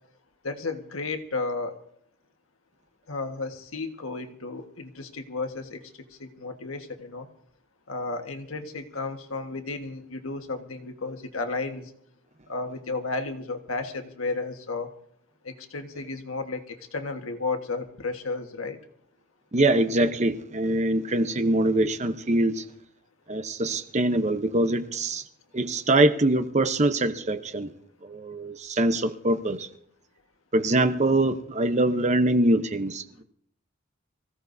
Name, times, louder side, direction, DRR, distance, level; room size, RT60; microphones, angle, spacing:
voice 1, 0.4-1.8 3.1-5.8 6.2-7.3 7.9-11.9 12.5-14.9 15.4-18.8, left 3 dB, 85° left, 5 dB, 1.5 m, -33 dB
voice 2, 19.5-22.6 23.3-25.2 25.5-27.7 28.0-29.7 30.5-33.2, right 1 dB, 35° right, 9 dB, 0.8 m, -23 dB
24.5 x 16.0 x 2.7 m, 0.67 s
head